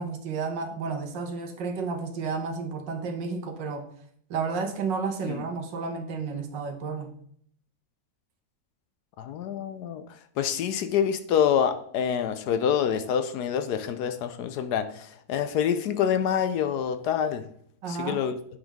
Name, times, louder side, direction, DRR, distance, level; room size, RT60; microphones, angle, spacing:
voice 1, 0.0-3.9 4.3-7.1 17.8-18.2, right 4 dB, 80° right, 1.7 m, -31 dB
voice 2, 9.2-10.0 10.4-17.4 17.9-18.3, left 8 dB, 70° left, 1.1 m, -26 dB
8.7 x 5.5 x 3.5 m
omnidirectional pair, 1.9 m